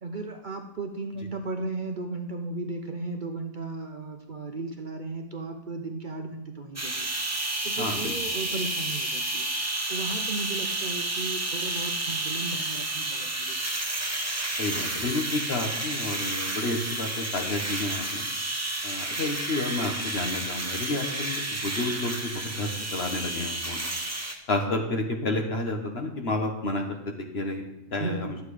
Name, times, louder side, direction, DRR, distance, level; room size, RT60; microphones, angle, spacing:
voice 1, 0.0-7.1 7.6-9.5 9.9-13.6 28.0-28.4, right 3 dB, 45° right, 4 dB, 0.9 m, -35 dB
sound 1, 6.8-24.3, right 2 dB, 15° right, 0.9 m, -31 dB
voice 2, 7.8-8.1 14.6-18.3 18.8-23.8 24.5-26.8 27.3-27.6 27.9-28.4, left 2 dB, 50° left, 3 dB, 1.6 m, -30 dB
12.0 x 8.2 x 4.9 m, 0.87 s
omnidirectional pair, 1.3 m